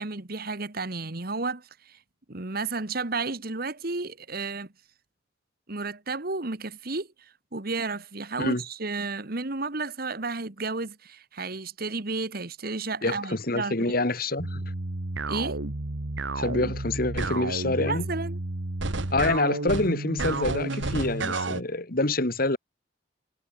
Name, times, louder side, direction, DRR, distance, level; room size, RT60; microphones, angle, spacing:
voice 1, 0.0-2.0 2.3-4.7 5.7-7.1 7.5-13.7 15.3-15.6 17.8-18.4, right 3 dB, 50° right, 1.6 m, -32 dB
voice 2, 13.0-14.6 16.4-18.0 19.1-22.6, left 2 dB, 50° left, 2.2 m, -26 dB
sound 1, 14.4-21.6, right 2 dB, 75° right, 1.7 m, -31 dB
head